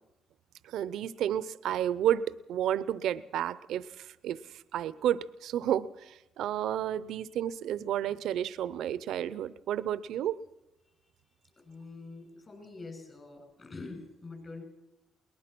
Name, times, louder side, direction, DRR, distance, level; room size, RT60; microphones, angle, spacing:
voice 1, 0.6-4.4 4.7-10.4, right 11 dB, 80° right, 16 dB, 0.7 m, -31 dB
voice 2, 11.5-14.6, left 3 dB, 40° left, 5 dB, 8.0 m, -45 dB
22.0 x 19.5 x 6.1 m, 0.91 s
cardioid pair, 90°, 0 cm